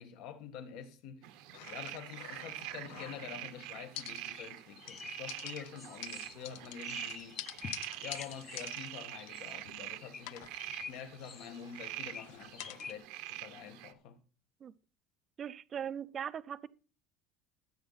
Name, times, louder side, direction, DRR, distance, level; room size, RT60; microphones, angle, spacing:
voice 1, 0.0-14.2, left 8 dB, 55° left, 1.6 m, -48 dB
sound 1, 1.2-13.9, right 16 dB, 60° right, 0.9 m, -45 dB
sound 2, 1.5-3.5 3.9-4.6 4.9-9.9 10.2-12.9, left 15 dB, 75° left, 0.6 m, -48 dB
sound 3, 3.0-3.2 3.9-4.0 4.3-4.5 4.8-8.9 9.1-9.6 10.0-11.6 12.0-12.9, left 5 dB, 20° left, 0.9 m, -48 dB
voice 2, 15.4-16.7, right 8 dB, 25° right, 0.5 m, -39 dB
13.5 x 8.4 x 4.1 m
cardioid pair, 180°, 0 cm